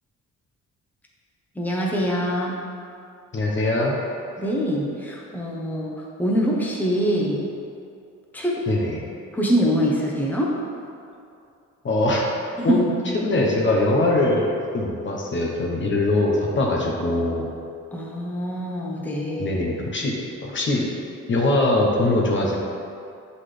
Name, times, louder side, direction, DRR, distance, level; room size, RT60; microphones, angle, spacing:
voice 1, 1.6-2.6 4.4-7.4 8.3-8.6 9.3-10.6 12.6-12.8 17.9-19.5, equal, 5° left, -3 dB, 0.9 m, -24 dB
voice 2, 3.3-4.0 8.7-9.0 11.8-12.2 12.6-12.9 13.2-17.5 19.4-20.1 20.4-20.9 21.3-22.6, left 2 dB, 40° left, -2 dB, 0.9 m, -22 dB
7.4 x 4.1 x 3.3 m, 2.5 s
cardioid pair, 90°, 30 cm